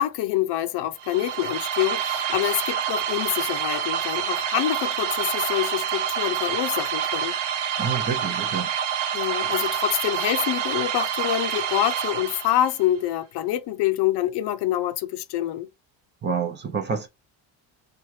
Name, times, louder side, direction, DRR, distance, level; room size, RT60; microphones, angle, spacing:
voice 1, 0.0-7.4 9.1-15.7, left 13 dB, 55° left, 0.5 m, -26 dB
sound 1, 1.0-12.8, right 8 dB, 55° right, 0.9 m, -27 dB
voice 2, 7.8-8.7 16.2-17.1, right 5 dB, 25° right, 0.5 m, -28 dB
3.1 x 2.4 x 2.7 m
cardioid pair, 165°, 48 cm